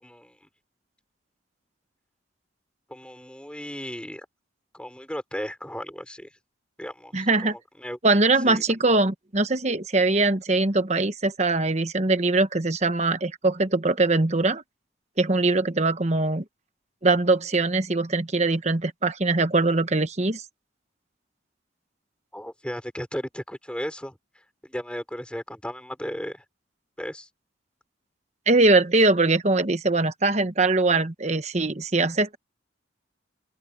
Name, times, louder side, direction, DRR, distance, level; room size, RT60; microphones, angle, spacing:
voice 1, 0.0-0.4 2.9-4.3 4.7-6.3 6.8-8.0 8.5-8.6 22.3-24.2 24.6-26.4 27.0-27.3, equal, 5° left, 5.3 m, -35 dB
voice 2, 7.1-7.6 8.0-14.6 15.2-16.4 17.0-20.4 28.5-32.4, right 3 dB, 35° right, 1.2 m, -22 dB
open air
head